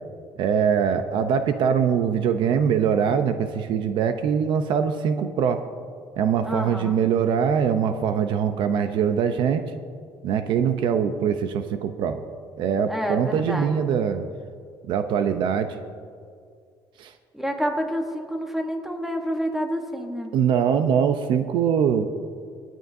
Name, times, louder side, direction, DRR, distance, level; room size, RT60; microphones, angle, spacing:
voice 1, 0.4-5.6 6.2-9.6 10.2-12.2 12.6-14.2 14.9-15.7 17.0-17.1 20.3-22.1, right 7 dB, 65° right, 9 dB, 0.7 m, -22 dB
voice 2, 6.4-7.0 12.9-13.7 17.3-20.3, equal, 5° right, 3 dB, 1.2 m, -28 dB
26.0 x 9.2 x 2.7 m, 2.1 s
cardioid pair, 145°, 9 cm